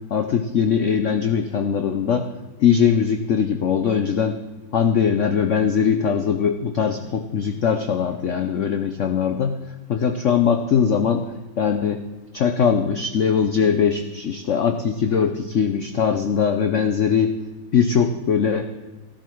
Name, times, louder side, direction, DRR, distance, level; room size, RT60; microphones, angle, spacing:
voice 1, 0.1-2.3 2.6-4.4 4.7-9.6 9.9-11.2 11.6-12.0 12.3-17.3 17.7-18.7, left 7 dB, 65° left, 6 dB, 0.7 m, -21 dB
14.5 x 12.0 x 4.6 m, 1.2 s
omnidirectional pair, 2.1 m